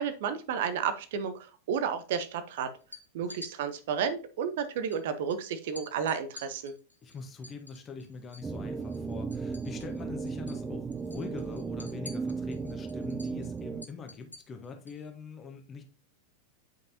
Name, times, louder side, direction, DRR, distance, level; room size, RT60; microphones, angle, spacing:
voice 1, 0.0-2.7 3.1-6.7, right 7 dB, 55° right, 11 dB, 0.7 m, -32 dB
sound 1, 2.8-3.5 4.9-5.0 5.3-5.4 5.8-8.5 8.8-10.0 10.3-10.6 10.9-15.0, left 3 dB, 85° left, 0.9 m, -49 dB
voice 2, 7.0-15.8, left 4 dB, 25° left, 4 dB, 1.2 m, -43 dB
sound 2, 8.4-13.9, right 4 dB, 15° right, 0.3 m, -36 dB
9.2 x 5.3 x 2.8 m, 0.36 s
figure-of-eight pair, 90°, 0 cm